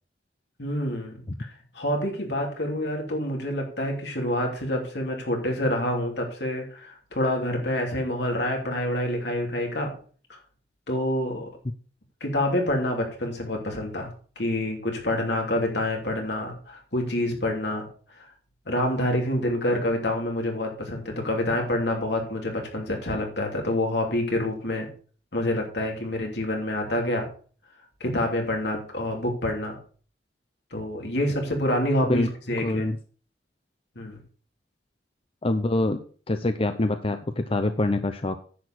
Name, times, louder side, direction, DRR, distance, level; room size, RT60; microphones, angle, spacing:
voice 1, 0.6-1.2 1.7-10.0 10.9-11.5 12.2-14.1 14.4-17.9 18.7-24.9 25.3-27.3 28.0-29.8 30.7-32.9 34.0-34.2, left 1 dB, 75° left, 1 dB, 3.0 m, -27 dB
voice 2, 32.6-33.0 35.4-38.4, left 2 dB, 35° left, 8 dB, 0.6 m, -25 dB
10.0 x 4.6 x 7.8 m, 0.41 s
head